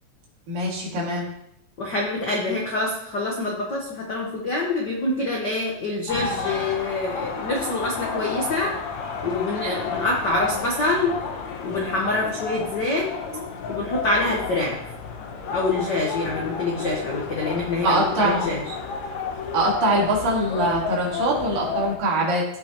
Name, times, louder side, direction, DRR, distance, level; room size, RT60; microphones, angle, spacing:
voice 1, 0.5-1.3 6.1-6.2 17.8-18.5 19.5-22.4, right 2 dB, 80° right, -3 dB, 4.0 m, -23 dB
voice 2, 1.8-8.7 9.2-11.2 11.6-13.1 13.7-14.8 15.5-18.7, left 2 dB, 85° left, -2 dB, 0.9 m, -26 dB
sound 1, 6.1-22.0, left 5 dB, 70° left, 1.9 m, -31 dB
15.5 x 5.8 x 3.0 m, 0.73 s
omnidirectional pair, 3.9 m